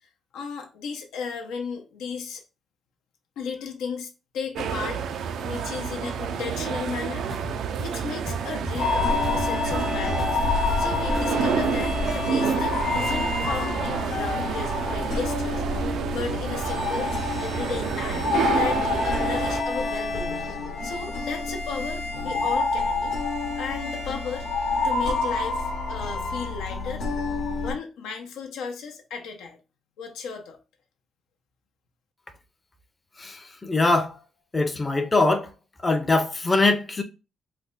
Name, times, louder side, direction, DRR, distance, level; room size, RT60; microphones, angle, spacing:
voice 1, 0.3-2.4 3.4-4.1 4.3-5.0 5.4-10.4 10.8-15.6 16.1-20.4 20.8-23.2 23.6-24.5 24.8-27.1 27.6-29.6 30.0-30.6, left 5 dB, 90° left, 0.6 m, -35 dB
sound 1, 4.5-19.6, right 7 dB, 75° right, 0.3 m, -29 dB
sound 2, 7.2-11.7 12.0-12.7 12.9-13.7, left 1 dB, 40° left, 1.1 m, -37 dB
sound 3, 8.8-27.7, left 3 dB, 70° left, 0.9 m, -28 dB
voice 2, 33.2-34.1 34.5-35.5 35.8-37.0, left 2 dB, 25° left, 0.5 m, -22 dB
3.3 x 2.1 x 3.7 m
cardioid pair, 90°, 0 cm